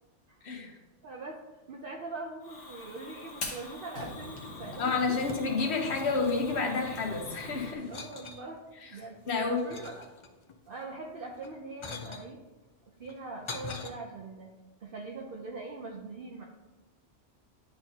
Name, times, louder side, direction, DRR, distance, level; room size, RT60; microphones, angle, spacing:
voice 1, 1.0-1.4 1.7-5.2 7.8-9.2 9.5-10.1 10.7-12.4 13.0-14.5 14.8-16.4, right 3 dB, 55° right, -1 dB, 0.8 m, -42 dB
Fire, 2.4-7.8, left 2 dB, 85° left, 1.5 m, -42 dB
sound 1, 4.7-5.7 5.9-7.3 7.8-8.4 9.0-10.6 11.3-12.3 13.0-13.9, left 5 dB, 55° left, 0.3 m, -44 dB
voice 2, 4.8-7.9 9.3-9.6, left 4 dB, 70° left, 2 dB, 1.2 m, -29 dB
10.0 x 4.1 x 2.8 m, 1.1 s
omnidirectional pair, 1.2 m